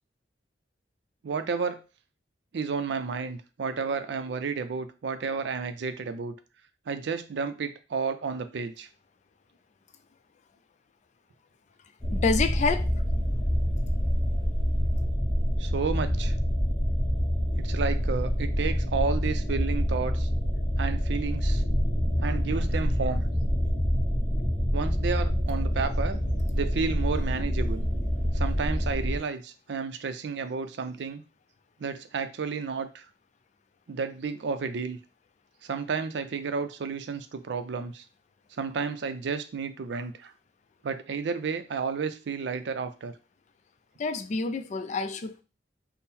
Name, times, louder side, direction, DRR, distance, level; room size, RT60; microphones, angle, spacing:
voice 1, 1.2-1.8 2.5-6.3 6.9-8.9 15.6-16.4 17.6-20.3 20.8-21.6 22.2-23.3 24.7-26.2 26.5-27.9 28.3-31.2 31.8-33.0 33.9-35.0 35.6-38.0 38.6-40.3 40.8-43.1, right 5 dB, 70° right, 0.4 m, -31 dB
sound 1, 12.0-29.2, equal, 10° left, 0.8 m, -26 dB
voice 2, 12.1-12.9 44.0-45.4, left 4 dB, 40° left, 0.3 m, -27 dB
3.6 x 2.0 x 4.2 m
head